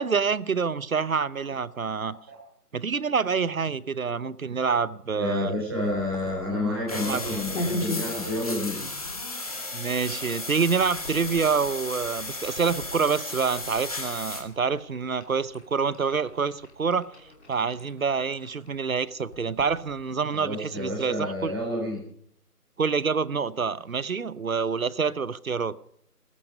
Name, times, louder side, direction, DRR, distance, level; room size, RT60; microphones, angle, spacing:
voice 1, 0.0-2.2 2.7-5.6 7.0-7.4 9.7-17.1 17.5-21.5 22.8-25.8, right 5 dB, 60° right, 19 dB, 0.8 m, -27 dB
voice 2, 5.1-8.8 20.3-22.0, left 1 dB, 15° right, -1 dB, 4.1 m, -29 dB
sound 1, 5.8-20.3, left 1 dB, 45° left, 3.1 m, -41 dB
sound 2, 6.9-14.4, left 2 dB, 25° left, 2.0 m, -35 dB
17.0 x 14.0 x 5.3 m, 0.65 s
figure-of-eight pair, 175°, 47 cm